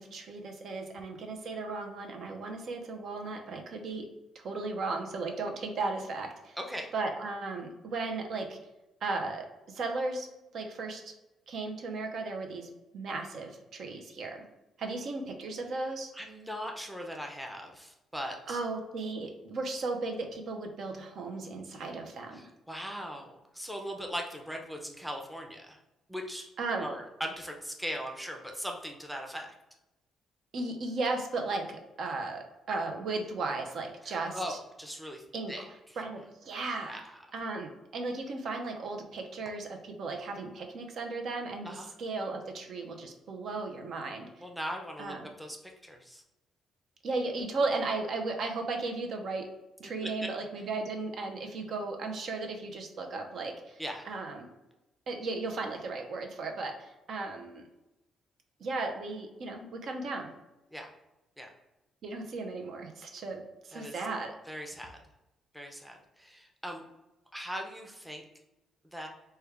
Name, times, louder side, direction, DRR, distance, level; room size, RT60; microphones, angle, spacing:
voice 1, 0.0-4.1 4.3-6.6 6.9-8.6 9.0-10.3 10.5-11.0 11.5-14.4 14.8-16.1 18.5-22.5 26.6-26.9 30.5-34.6 35.3-35.5 36.0-37.0 37.3-44.3 45.0-45.3 47.0-49.5 49.8-54.5 55.1-57.6 58.6-60.3 62.0-64.3, right 3 dB, 65° right, 3 dB, 0.5 m, -35 dB
voice 2, 6.6-6.9 16.1-18.6 22.3-25.8 26.1-26.5 26.8-29.5 34.0-35.2 35.5-35.6 36.8-37.0 41.7-41.9 44.4-45.6 45.8-46.2 50.0-50.1 53.8-54.1 60.7-60.9 61.4-61.5 63.7-64.0 64.5-65.0 65.5-66.8 67.3-68.2 68.9-69.1, equal, 5° right, 1 dB, 0.5 m, -39 dB
3.3 x 2.2 x 3.3 m, 0.98 s
cardioid pair, 90°, 0 cm